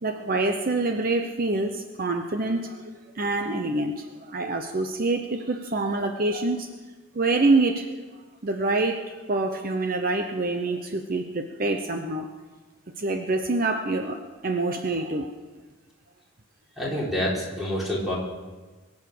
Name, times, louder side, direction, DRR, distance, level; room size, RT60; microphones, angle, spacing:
voice 1, 0.0-2.9 3.2-6.7 7.1-8.0 8.4-12.3 13.0-15.3, right 2 dB, 45° right, 5 dB, 0.8 m, -26 dB
voice 2, 16.8-18.2, left 1 dB, ahead, -5 dB, 3.8 m, -27 dB
22.5 x 8.2 x 6.7 m, 1.3 s
head